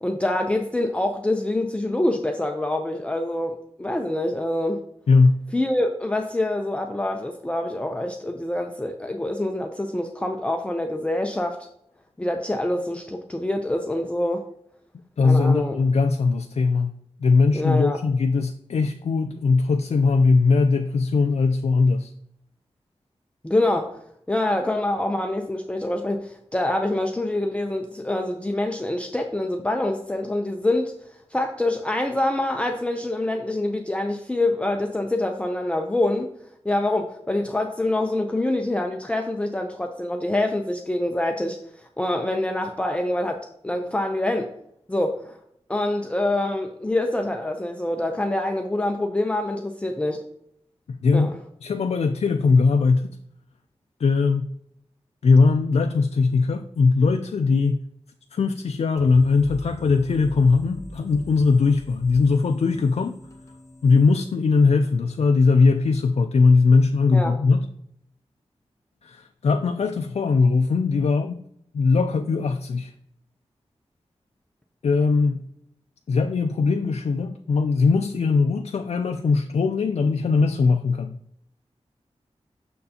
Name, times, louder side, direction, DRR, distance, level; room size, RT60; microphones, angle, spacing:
voice 1, 0.0-4.8 5.5-11.6 12.2-14.4 15.2-15.8 17.5-18.0 23.4-24.0 24.3-30.9 31.3-36.3 36.6-44.5 44.9-45.4 45.7-50.2 51.1-51.3 67.1-67.3, left 1 dB, 10° left, 3 dB, 0.5 m, -25 dB
voice 2, 5.1-5.4 15.2-16.9 17.2-22.1 50.9-51.3 51.6-53.1 54.0-54.5 55.2-57.8 58.3-63.1 63.8-67.6 69.0-71.4 71.7-72.9 74.8-75.4 76.1-81.2, left 4 dB, 65° left, 5 dB, 0.4 m, -20 dB
sound 1, 59.0-64.6, left 1 dB, 25° left, 0.9 m, -43 dB
6.5 x 6.5 x 2.8 m, 0.72 s
wide cardioid pair, 90°, 11 cm